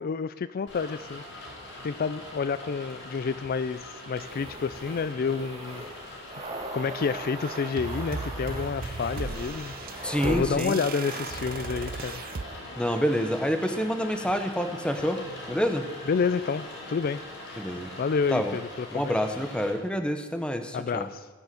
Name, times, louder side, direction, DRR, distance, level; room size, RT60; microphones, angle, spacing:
voice 1, 0.0-1.5 1.8-6.2 6.7-12.2 16.1-17.2 17.5-17.7 18.0-19.1 20.7-21.3, left 5 dB, 45° left, 14 dB, 0.4 m, -29 dB
Rain, 0.7-19.7, left 1 dB, 65° left, 5.5 m, -42 dB
sound 1, 4.1-12.6, right 2 dB, 30° right, 2.3 m, -41 dB
sound 2, 7.4-12.4, right 4 dB, 45° right, 0.6 m, -37 dB
voice 2, 10.0-10.8 12.8-15.2 15.5-15.8 17.6-17.9 18.3-18.6 18.9-21.1, equal, 5° left, 7 dB, 1.1 m, -27 dB
19.5 x 7.1 x 7.8 m, 1.3 s
head